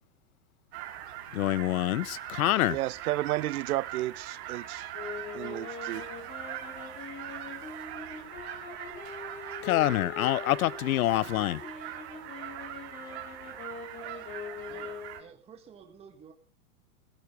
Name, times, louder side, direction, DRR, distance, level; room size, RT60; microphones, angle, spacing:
sound 1, 0.7-15.2, right 12 dB, 45° right, 3.0 m, -41 dB
voice 1, 1.3-2.8 9.6-11.6, left 15 dB, 65° left, 0.8 m, -26 dB
voice 2, 2.7-4.9 5.3-6.1, right 16 dB, 70° right, 0.7 m, -32 dB
sound 2, 4.9-15.3, left 5 dB, 25° left, 5.3 m, -43 dB
voice 3, 14.6-16.3, right 7 dB, 15° right, 1.6 m, -53 dB
18.5 x 14.5 x 3.3 m
supercardioid pair, 165°, 45 cm